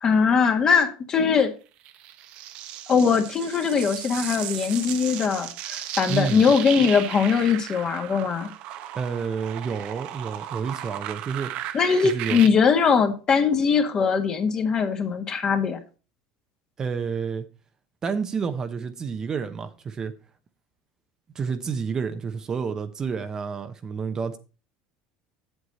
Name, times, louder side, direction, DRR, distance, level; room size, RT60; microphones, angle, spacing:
voice 1, 0.0-1.5 2.9-8.5 11.7-15.8, left 6 dB, 35° left, 1.6 m, -21 dB
sound 1, 1.9-12.5, right 12 dB, 60° right, 0.9 m, -35 dB
voice 2, 6.1-6.5 8.9-11.8 12.0-12.4 16.8-17.5 18.0-20.1 21.3-24.4, right 6 dB, 30° right, 0.8 m, -29 dB
8.1 x 8.0 x 4.1 m
supercardioid pair, 125°, 2 cm